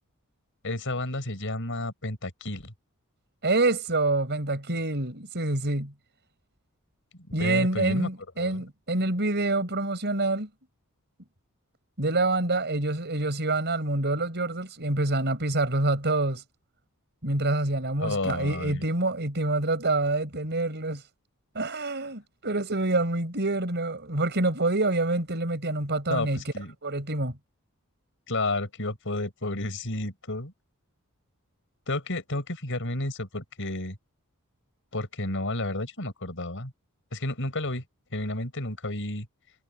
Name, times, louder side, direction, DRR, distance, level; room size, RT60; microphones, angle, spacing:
voice 1, 0.6-2.7 7.1-8.1 8.4-8.6 18.0-18.8 26.1-26.7 28.3-30.5 31.9-34.0 34.9-36.7 37.1-37.8 38.1-39.3, left 2 dB, 60° left, 6.4 m, -31 dB
voice 2, 3.4-5.9 7.3-10.5 12.0-16.4 17.2-21.0 21.5-26.4 26.8-27.4, right 2 dB, 50° right, 5.6 m, -26 dB
head